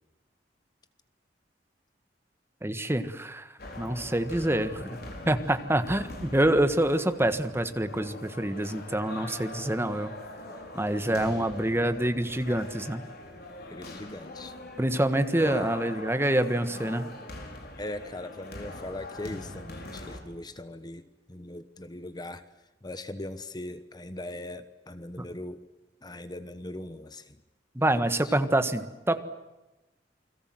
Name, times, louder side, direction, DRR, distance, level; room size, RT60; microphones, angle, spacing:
voice 1, 2.6-3.5 3.8-5.0 5.2-10.1 10.7-13.0 14.8-17.1 27.7-29.2, right 1 dB, 15° right, 10 dB, 1.5 m, -26 dB
sound 1, 3.6-20.2, left 1 dB, 60° left, 4.9 m, -43 dB
voice 2, 4.7-5.3 11.1-11.6 13.7-14.5 15.4-15.7 17.8-22.4 22.8-25.6 26.0-27.4 28.1-28.4, left 1 dB, 25° left, 11 dB, 1.1 m, -40 dB
29.0 x 22.0 x 7.7 m, 1.1 s
head